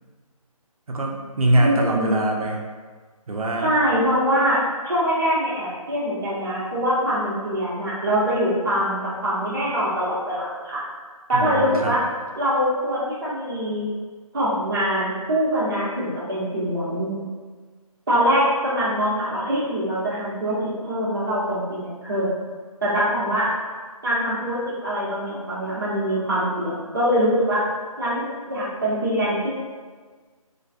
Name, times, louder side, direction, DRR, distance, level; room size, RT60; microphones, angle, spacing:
voice 1, 0.9-2.6 3.3-3.7 11.3-12.0, right 1 dB, 70° right, 0 dB, 0.5 m, -23 dB
voice 2, 1.6-2.2 3.6-10.8 11.3-12.0 12.4-13.9 14.3-17.1 18.1-20.6 20.8-22.3 22.8-23.5 24.0-27.6 28.0-29.5, equal, 40° right, -8 dB, 0.8 m, -23 dB
2.6 x 2.3 x 2.3 m, 1.5 s
figure-of-eight pair, 165°, 19 cm